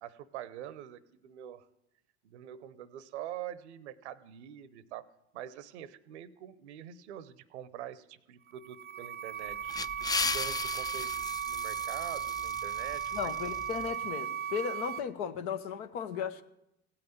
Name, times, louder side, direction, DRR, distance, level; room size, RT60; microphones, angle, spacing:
voice 1, 0.0-1.7 2.2-5.1 5.3-13.3, right 11 dB, 80° right, 0.8 m, -45 dB
sound 1, 8.5-15.0, right 8 dB, 30° right, 0.6 m, -36 dB
sound 2, 9.4-13.9, left 4 dB, 10° left, 0.4 m, -37 dB
voice 2, 13.1-16.4, left 7 dB, 70° left, 1.0 m, -36 dB
16.0 x 5.8 x 9.2 m
hypercardioid pair, 60°, 33 cm